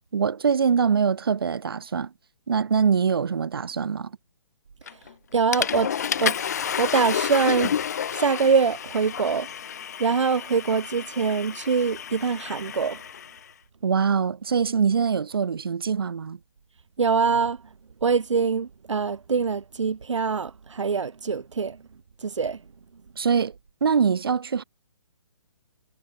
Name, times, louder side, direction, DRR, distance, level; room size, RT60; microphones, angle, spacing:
voice 1, 0.1-2.1 2.5-4.1 13.8-16.4 23.2-23.5 23.8-24.6, right 6 dB, 50° right, 6.8 m, -23 dB
voice 2, 4.8-5.9 6.2-6.4 6.8-7.8 8.1-9.5 10.0-13.0 17.0-17.6 18.0-21.8 22.2-22.6, right 5 dB, 75° right, 2.5 m, -24 dB
Water / Toilet flush, 4.9-5.1 5.5-13.4, left 8 dB, 35° left, 5.9 m, -30 dB
hypercardioid pair, 180°, 16 cm